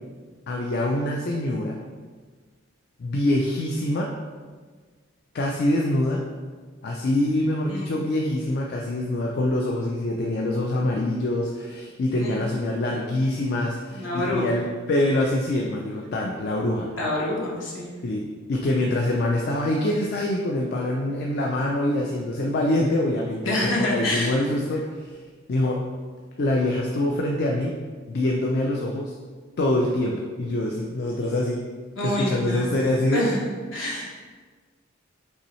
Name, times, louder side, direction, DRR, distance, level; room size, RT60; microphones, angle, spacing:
voice 1, 0.5-1.8 3.0-4.1 5.3-6.2 6.8-16.9 18.0-25.2 25.5-25.8 26.4-27.7 28.1-29.1 29.6-31.6 32.0-33.3, left 1 dB, 50° left, 0 dB, 0.4 m, -25 dB
voice 2, 13.9-14.4 17.0-17.9 23.4-24.3 31.9-32.8 33.1-33.4 33.7-34.1, left 1 dB, 65° left, -4 dB, 1.2 m, -27 dB
5.4 x 3.0 x 3.0 m, 1.5 s
head